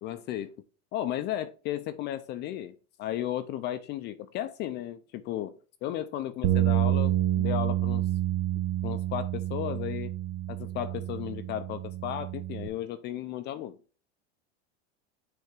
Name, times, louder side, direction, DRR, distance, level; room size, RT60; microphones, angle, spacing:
voice 1, 0.0-0.5 0.9-5.5 5.8-8.1 8.8-10.1 10.5-13.8, left 12 dB, 30° left, 0.4 m, -34 dB
sound 1, 6.4-12.7, right 13 dB, 35° right, 0.8 m, -28 dB
6.5 x 3.4 x 4.7 m
supercardioid pair, 135°, 34 cm